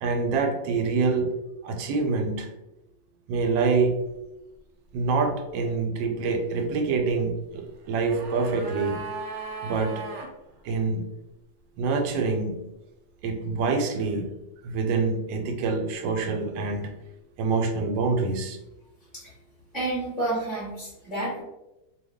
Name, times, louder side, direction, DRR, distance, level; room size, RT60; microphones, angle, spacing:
voice 1, 0.0-1.3 1.6-2.5 3.3-4.0 4.9-9.0 9.6-10.0 10.6-11.1 11.8-12.7 13.2-14.3 14.6-16.9 17.4-18.6, right 4 dB, 90° right, 4 dB, 1.3 m, -26 dB
sound 1, 7.7-10.3 10.6-10.7, right 4 dB, 70° right, 0.9 m, -37 dB
voice 2, 19.7-21.4, right 2 dB, ahead, -8 dB, 0.9 m, -30 dB
2.9 x 2.3 x 3.4 m, 0.94 s
omnidirectional pair, 2.0 m